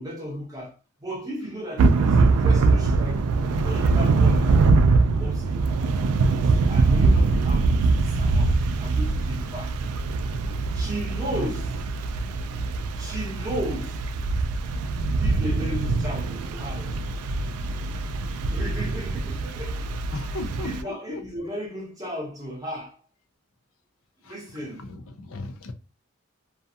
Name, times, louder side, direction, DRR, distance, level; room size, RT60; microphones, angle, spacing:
voice 1, 0.0-4.5 5.2-5.7 6.2-9.8 10.7-11.8 13.0-14.1 15.2-17.0 18.3-23.0 24.2-24.9, equal, 15° right, 0.9 m, -35 dB
Thunder / Rain, 1.8-20.8, right 3 dB, 85° right, 0.3 m, -23 dB
voice 2, 20.1-21.2 24.3-24.4 24.8-25.7, left 2 dB, 75° left, 0.5 m, -35 dB
2.4 x 2.3 x 2.7 m
head